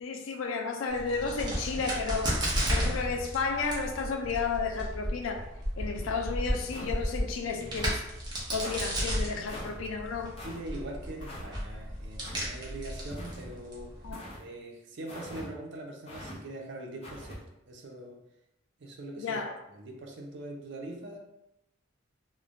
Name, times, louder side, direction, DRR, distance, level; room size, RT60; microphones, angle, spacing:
voice 1, 0.0-5.4 5.8-8.0 8.5-10.3 14.0-14.2 19.2-19.6, left 4 dB, 75° left, 4 dB, 0.4 m, -32 dB
Crack, 0.9-14.1, equal, 20° right, 0.7 m, -34 dB
sound 1, 6.7-7.2 7.7-8.1 8.6-8.8 9.5-9.8 10.4-10.6 11.2-11.5 12.2-12.5 13.1-13.6 14.1-14.4 15.1-15.5 16.1-16.4 17.0-17.4, left 1 dB, 30° left, 0.6 m, -43 dB
voice 2, 10.2-14.0 14.4-18.2 18.8-21.2, right 1 dB, 65° right, 1 dB, 0.5 m, -42 dB
3.1 x 2.0 x 2.4 m, 0.87 s
head